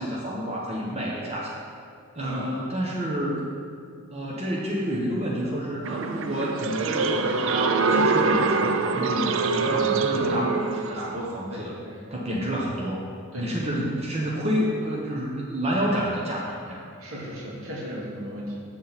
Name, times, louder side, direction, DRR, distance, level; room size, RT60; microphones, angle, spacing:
voice 1, 0.0-1.6 2.1-3.4 4.1-11.7 12.1-13.0 13.3-16.8, equal, 30° right, -4 dB, 0.9 m, -29 dB
sound 1, 5.8-11.2, right 4 dB, 65° right, 0.4 m, -24 dB
voice 2, 11.5-12.0 13.3-13.5 17.0-18.6, equal, 80° right, -4 dB, 2.0 m, -36 dB
8.3 x 6.2 x 4.1 m, 2.2 s
head